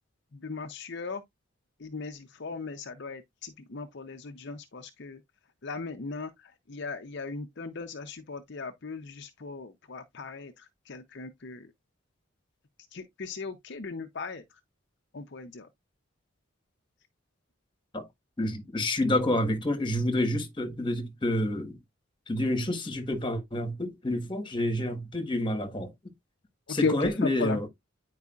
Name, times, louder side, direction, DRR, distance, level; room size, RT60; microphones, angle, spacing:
voice 1, 0.4-1.2 1.8-5.2 5.6-6.3 6.7-10.5 10.9-11.7 12.9-14.4 15.1-15.7 26.8-27.1 27.4-27.6, left 4 dB, 55° left, 0.7 m, -36 dB
voice 2, 18.4-21.8 22.3-25.9 26.7-27.7, left 1 dB, 25° left, 1.5 m, -28 dB
9.5 x 4.8 x 2.4 m
head